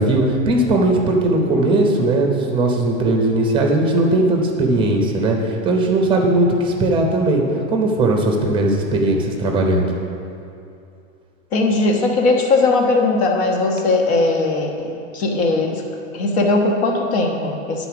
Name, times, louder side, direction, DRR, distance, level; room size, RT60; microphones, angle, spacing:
voice 1, 0.0-7.4 7.7-9.9, right 2 dB, 15° right, 1 dB, 0.7 m, -18 dB
voice 2, 11.5-15.8 16.1-17.9, left 3 dB, 55° left, 2 dB, 1.3 m, -19 dB
9.9 x 4.1 x 5.9 m, 2.6 s
supercardioid pair, 155°, 39 cm